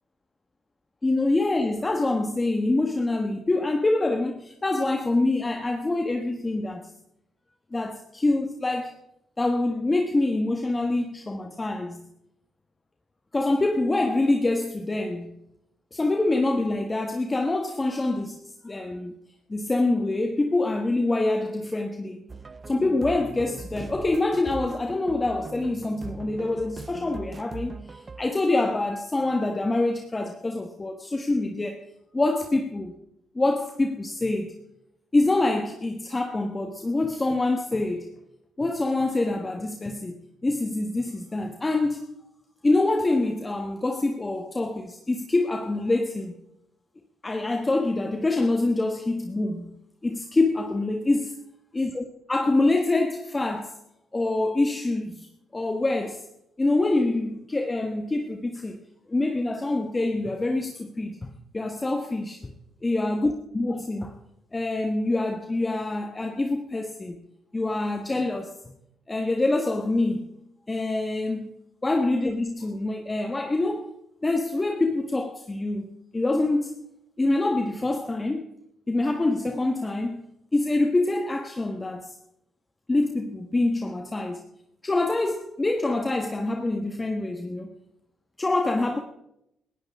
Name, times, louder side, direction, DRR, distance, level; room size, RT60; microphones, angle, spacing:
voice 1, 1.0-6.9 7.7-8.9 9.4-12.1 13.3-15.4 15.9-19.1 19.5-22.2 22.7-31.8 32.1-32.9 33.3-34.5 35.1-38.1 38.6-40.2 40.4-42.1 42.6-46.3 47.2-49.7 50.0-51.3 51.7-53.8 54.1-56.3 56.6-58.8 59.1-62.4 62.8-64.2 64.5-67.2 67.5-68.5 69.1-70.4 70.7-71.5 71.8-73.9 74.2-76.8 77.2-78.5 78.9-82.1 82.9-84.4 84.8-87.7 88.4-89.0, left 2 dB, 20° left, 1.4 m, -25 dB
sound 1, 22.3-28.2, right 4 dB, 30° right, 0.7 m, -40 dB
18.5 x 14.5 x 3.6 m
cardioid pair, 90°, 0 cm